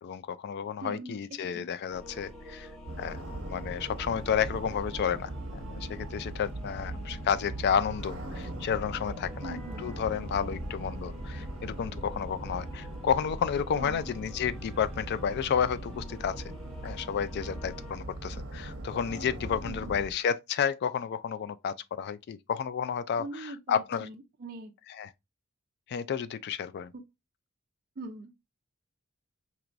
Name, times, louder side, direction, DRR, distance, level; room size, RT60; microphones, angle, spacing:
voice 1, 0.0-2.7 3.0-16.4 16.8-24.1 25.0-25.1 25.9-26.9, left 7 dB, 50° left, 0.3 m, -31 dB
voice 2, 0.8-1.7 9.4-9.9 13.8-14.1 19.6-20.0 23.2-24.7 26.9-27.0 28.0-28.3, right 2 dB, 45° right, 0.5 m, -42 dB
sound 1, 1.9-17.9, equal, ahead, 0.9 m, -48 dB
sound 2, 2.8-20.1, right 1 dB, 70° right, 0.8 m, -40 dB
4.5 x 2.9 x 2.5 m
head